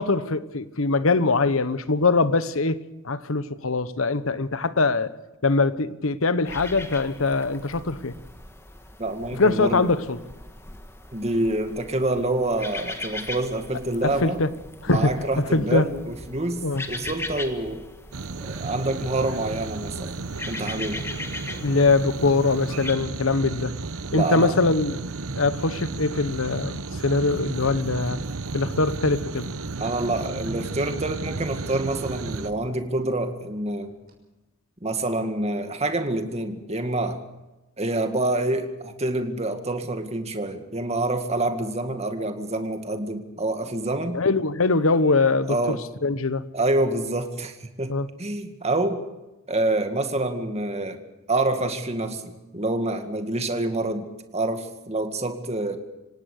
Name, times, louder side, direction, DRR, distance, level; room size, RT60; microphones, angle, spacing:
voice 1, 0.0-2.8 3.0-5.1 5.4-8.1 9.4-10.2 14.0-14.5 14.8-15.1 15.5-15.9 16.6-16.8 21.6-23.7 24.1-25.0 25.4-28.2 28.5-29.5 44.1-45.8 46.0-46.5 47.9-48.1, left 3 dB, 75° left, 1.2 m, -22 dB
sound 1, 6.4-22.9, left 2 dB, 10° left, 1.6 m, -40 dB
voice 2, 9.0-9.9 11.1-14.4 14.9-17.8 18.4-20.2 20.5-21.1 24.1-24.6 29.8-33.9 34.8-37.2 37.8-44.2 45.5-45.8 46.5-49.0 49.5-51.0 51.3-54.1 54.3-55.8, right 2 dB, 30° right, 2.1 m, -27 dB
sound 2, 16.9-17.9 18.1-18.2 19.0-19.6 21.0-22.2 22.8-22.9 23.5-23.8 24.1-24.2 25.3-25.6 26.5-26.7 27.1-28.4 30.1-31.3 32.0-33.0 33.5-33.6 34.0-34.1, equal, 50° right, 6.3 m, -44 dB
sound 3, 18.1-32.5, right 3 dB, 85° right, 1.0 m, -33 dB
26.0 x 18.0 x 6.7 m
head